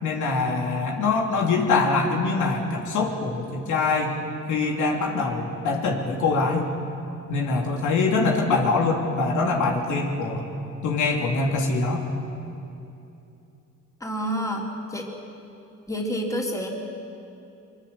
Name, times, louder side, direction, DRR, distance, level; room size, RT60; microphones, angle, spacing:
voice 1, 0.0-4.2 4.5-6.7 7.3-10.4 10.8-12.0, left 3 dB, 75° left, 0 dB, 3.1 m, -24 dB
voice 2, 14.0-15.1 15.9-16.7, equal, 10° left, -1 dB, 3.7 m, -28 dB
23.5 x 22.5 x 7.1 m, 2.8 s
cardioid pair, 90°, 30 cm